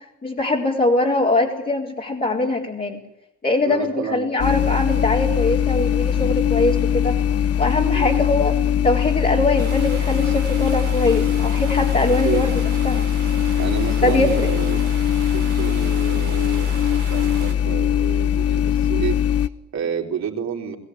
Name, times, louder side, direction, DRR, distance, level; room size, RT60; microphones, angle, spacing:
voice 1, 0.2-3.0 3.4-7.2 7.6-8.5 8.8-13.1 14.0-14.5, left 2 dB, 30° left, -4 dB, 4.1 m, -22 dB
voice 2, 3.6-4.7 7.9-8.2 12.0-12.4 13.6-14.8 15.3-19.2 19.4-20.8, right 8 dB, 65° right, 2 dB, 4.1 m, -30 dB
sound 1, 4.4-19.5, left 9 dB, 50° left, 0.9 m, -21 dB
sound 2, 9.6-17.5, right 10 dB, 85° right, 2.8 m, -38 dB
21.5 x 16.5 x 9.6 m, 0.84 s
cardioid pair, 90°, 30 cm